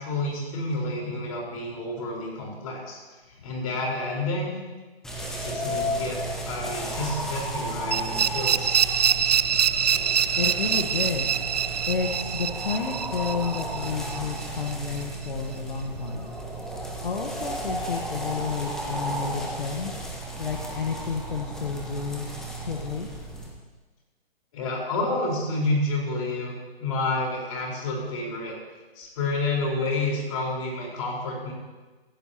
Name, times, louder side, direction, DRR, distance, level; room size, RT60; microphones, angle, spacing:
voice 1, 0.0-3.0 3.4-4.5 5.4-6.2 6.4-8.8 24.5-26.5 26.8-28.6 28.9-31.5, left 2 dB, 35° left, -2 dB, 4.6 m, -29 dB
sound 1, 5.0-23.5, right 1 dB, ahead, 1.2 m, -34 dB
sound 2, 7.9-14.7, right 8 dB, 45° right, 0.4 m, -25 dB
voice 2, 10.4-11.4 11.9-16.3 17.0-19.9 20.4-22.3 22.6-23.1, left 5 dB, 60° left, 2 dB, 1.5 m, -31 dB
16.5 x 16.0 x 3.0 m, 1.3 s
figure-of-eight pair, 135°, 30 cm